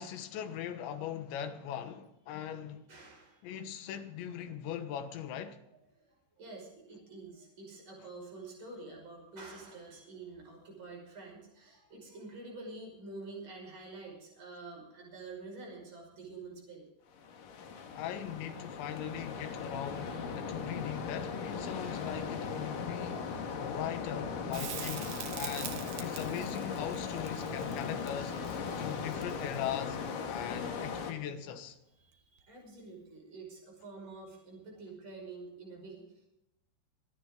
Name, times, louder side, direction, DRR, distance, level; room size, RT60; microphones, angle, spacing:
voice 1, 0.0-2.8 3.4-5.6 18.0-23.2 23.6-28.3 28.8-30.0 30.3-31.8, left 9 dB, 80° left, 3.5 m, -40 dB
voice 2, 2.9-3.5 5.9-16.9 20.0-20.2 30.6-30.9 32.0-36.3, right 3 dB, 25° right, 6.2 m, -48 dB
sound 1, 17.2-31.1, left 5 dB, 60° left, 2.8 m, -38 dB
Crackle, 24.5-29.7 32.4-32.5, right 9 dB, 70° right, 1.9 m, -44 dB
26.0 x 9.8 x 3.8 m
omnidirectional pair, 5.3 m